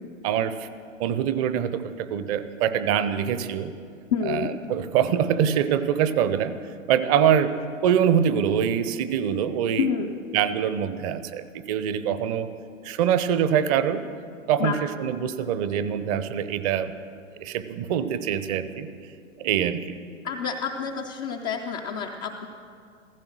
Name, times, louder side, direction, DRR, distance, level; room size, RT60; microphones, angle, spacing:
voice 1, 0.2-0.7 1.0-3.7 4.3-6.5 6.9-7.5 7.8-9.9 10.3-12.5 12.8-14.1 14.5-16.9 17.4-18.9 19.4-20.0, right 9 dB, 30° right, 12 dB, 0.7 m, -24 dB
voice 2, 4.1-4.5 9.8-10.1 14.6-14.8 20.2-22.5, left 7 dB, 15° left, -1 dB, 0.3 m, -28 dB
15.0 x 15.0 x 6.2 m, 2.4 s
figure-of-eight pair, 110°, 39 cm